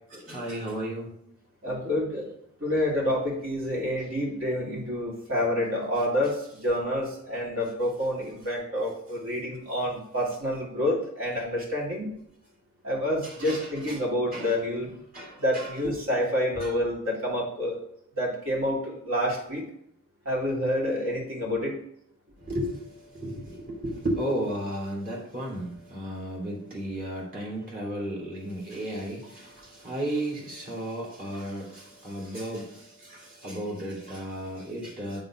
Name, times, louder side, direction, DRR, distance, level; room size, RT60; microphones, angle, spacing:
voice 1, 0.1-1.1 13.2-14.0 14.3-14.5 14.8-16.0 16.6-16.7 22.4-35.2, right 1 dB, 45° right, -3 dB, 3.1 m, -34 dB
voice 2, 1.6-2.3 2.6-12.1 12.8-14.9 15.4-17.8 18.2-19.6 20.2-21.8, left 1 dB, 65° right, -3 dB, 2.7 m, -28 dB
7.9 x 3.9 x 6.0 m, 0.72 s
head